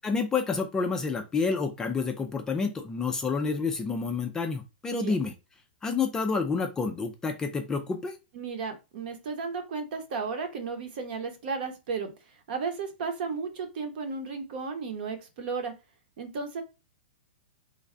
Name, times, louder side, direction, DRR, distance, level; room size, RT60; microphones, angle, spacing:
voice 1, 0.0-5.3 5.8-8.2, left 4 dB, 10° left, 5 dB, 0.3 m, -29 dB
voice 2, 8.3-12.1 12.5-15.7 16.2-16.6, right 5 dB, 55° right, 6 dB, 0.9 m, -34 dB
3.2 x 2.3 x 3.7 m, 0.27 s
hypercardioid pair, 150°, 6 cm